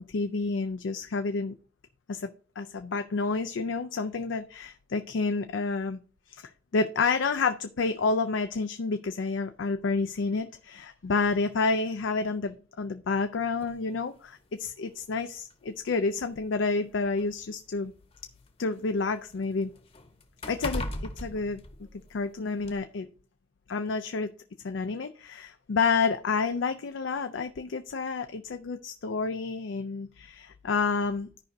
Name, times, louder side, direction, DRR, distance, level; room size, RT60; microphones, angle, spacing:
voice 1, 0.0-1.5 2.1-2.3 2.6-6.0 6.3-17.9 18.6-19.7 20.5-21.6 22.1-23.1 23.7-24.3 24.6-31.4, left 4 dB, 85° left, 9 dB, 0.5 m, -29 dB
sound 1, 13.6-13.8 14.8-14.9 15.4-15.5 16.5-18.4 18.8-22.2 22.6-22.8, left 1 dB, 30° left, 0.9 m, -38 dB
14.0 x 5.1 x 2.6 m, 0.42 s
head